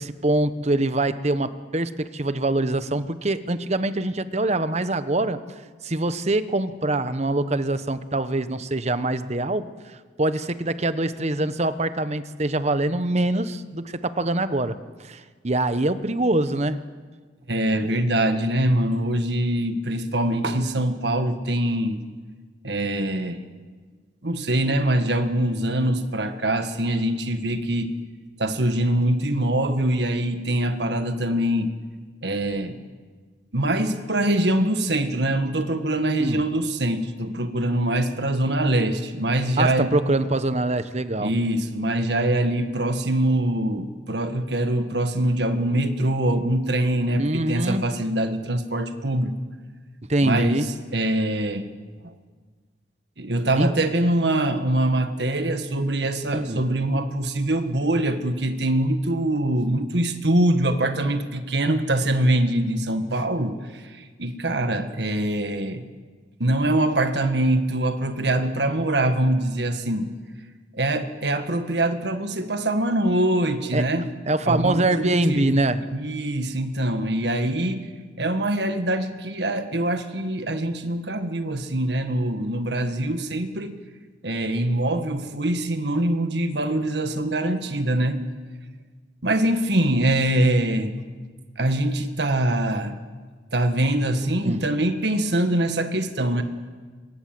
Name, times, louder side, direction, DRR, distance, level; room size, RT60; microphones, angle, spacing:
voice 1, 0.0-5.4 5.8-9.7 10.2-16.8 36.2-36.4 39.6-41.3 47.1-47.9 50.1-50.7 53.6-53.7 56.3-56.6 73.7-73.8 74.3-75.8 94.4-94.7, right 2 dB, 40° right, 12 dB, 1.0 m, -24 dB
voice 2, 17.5-22.0 22.6-23.4 24.2-28.0 28.4-31.7 32.2-32.8 33.5-39.9 41.2-49.3 50.2-50.7 50.9-51.7 52.0-52.1 53.2-65.8 66.4-70.1 70.7-74.1 74.4-75.6 75.9-77.9 78.2-83.8 84.2-88.2 89.2-91.0 91.6-93.0 93.5-96.4, right 1 dB, 65° right, 8 dB, 1.7 m, -23 dB
25.5 x 22.5 x 7.8 m, 1.5 s
head